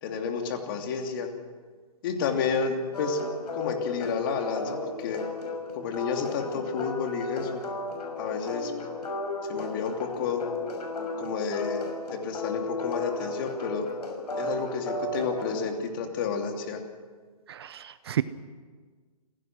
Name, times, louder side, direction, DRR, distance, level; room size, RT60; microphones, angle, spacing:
voice 1, 0.0-1.3 2.0-3.2 3.5-5.2 5.8-7.6 8.2-8.7 9.5-10.4 11.2-11.8 12.1-13.9 14.4-16.8, left 5 dB, 35° left, 4 dB, 3.0 m, -30 dB
sound 1, 2.9-15.6, left 2 dB, 75° left, 6.0 m, -34 dB
voice 2, 17.5-18.2, right 11 dB, 40° right, 15 dB, 0.7 m, -31 dB
28.5 x 16.5 x 6.2 m, 1.5 s
hypercardioid pair, 155°, 20 cm